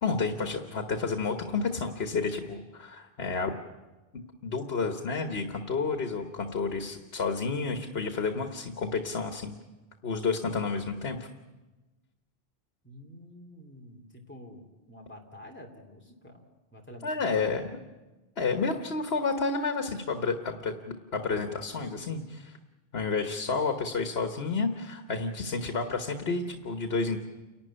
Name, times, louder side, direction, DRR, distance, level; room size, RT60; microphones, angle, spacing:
voice 1, 0.0-3.5 4.4-9.6 10.0-11.2 17.0-17.6 18.4-22.6 22.9-27.2, left 4 dB, 80° left, 6 dB, 1.6 m, -30 dB
voice 2, 12.8-16.4 16.7-17.5, left 1 dB, 10° left, 0 dB, 2.7 m, -48 dB
29.0 x 12.0 x 9.9 m, 1.2 s
omnidirectional pair, 1.0 m